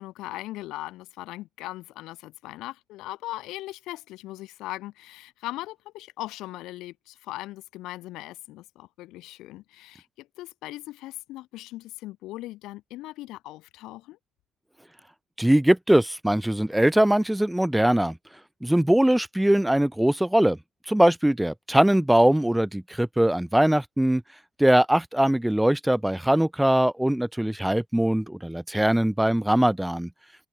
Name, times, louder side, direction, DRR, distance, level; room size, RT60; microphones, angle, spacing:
voice 1, 0.0-14.2, left 17 dB, 85° left, 5.8 m, -39 dB
voice 2, 15.4-18.2 18.6-20.6 20.9-24.2 24.6-30.1, right 1 dB, 5° right, 1.2 m, -21 dB
cardioid pair, 105°, 0 cm